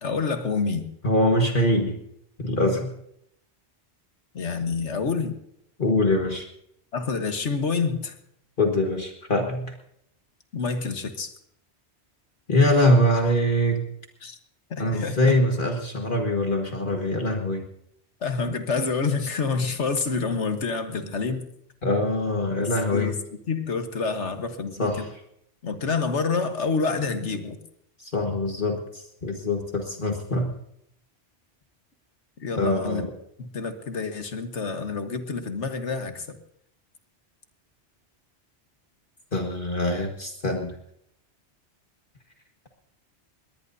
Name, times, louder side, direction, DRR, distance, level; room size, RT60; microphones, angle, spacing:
voice 1, 0.0-0.8 4.3-5.3 6.9-8.1 10.5-11.3 14.2-14.4 14.7-15.2 18.2-21.5 22.9-23.1 23.5-24.9 25.6-27.6 32.4-33.1 33.4-36.4, left 4 dB, 75° left, 7 dB, 1.6 m, -27 dB
voice 2, 1.0-2.0 2.4-2.9 5.8-6.5 8.6-9.8 12.5-13.8 14.8-17.7 21.8-23.1 24.8-25.1 28.0-30.5 32.6-33.1 39.3-40.8, left 1 dB, 45° left, 2 dB, 1.8 m, -23 dB
22.0 x 18.5 x 2.7 m, 0.74 s
omnidirectional pair, 1.2 m